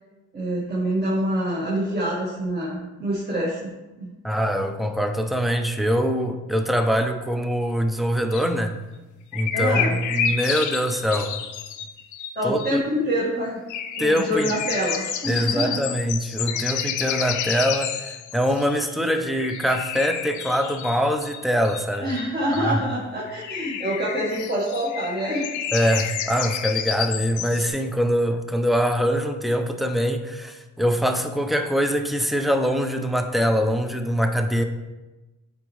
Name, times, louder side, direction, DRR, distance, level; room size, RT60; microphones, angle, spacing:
voice 1, 0.3-3.7 4.0-4.1 9.5-10.0 12.3-13.6 14.0-15.8 22.0-25.7, equal, 30° right, -7 dB, 1.6 m, -26 dB
voice 2, 4.2-8.7 9.3-11.4 12.4-12.8 14.0-14.5 15.3-22.1 22.6-22.8 25.7-34.6, equal, ahead, 6 dB, 0.6 m, -23 dB
sound 1, 8.3-8.5 9.3-12.8 13.7-22.7 23.3-27.7, left 8 dB, 75° left, 0.6 m, -30 dB
8.5 x 4.1 x 3.1 m, 1.1 s
cardioid pair, 90°, 30 cm